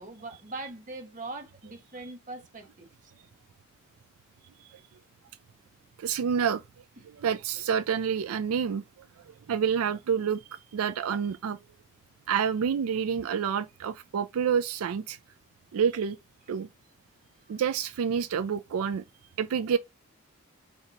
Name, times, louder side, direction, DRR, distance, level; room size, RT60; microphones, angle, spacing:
voice 1, 0.0-2.9, right 2 dB, 35° right, 1.1 m, -41 dB
voice 2, 6.0-6.6 7.0-8.8 9.2-10.4 10.7-11.6 12.3-15.2 15.7-16.2 16.5-16.7 17.5-19.0 19.4-19.8, right 7 dB, 85° right, 0.4 m, -28 dB
4.5 x 2.8 x 3.7 m
head